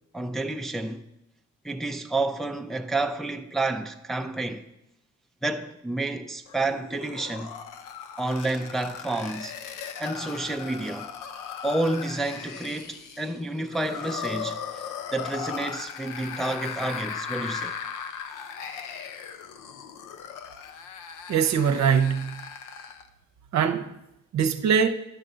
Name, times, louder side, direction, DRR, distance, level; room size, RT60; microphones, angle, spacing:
voice 1, 0.1-1.0 1.6-4.6 5.4-7.5 8.2-9.5 10.0-11.1 11.6-14.6 15.1-17.7, right 2 dB, ahead, 0.5 m, -29 dB
sound 1, 6.5-23.1, left 7 dB, 90° left, 0.7 m, -38 dB
voice 2, 21.3-22.3 23.5-23.9 24.3-24.9, right 7 dB, 65° right, 0.8 m, -22 dB
11.0 x 3.8 x 6.7 m
cardioid pair, 90°, 30 cm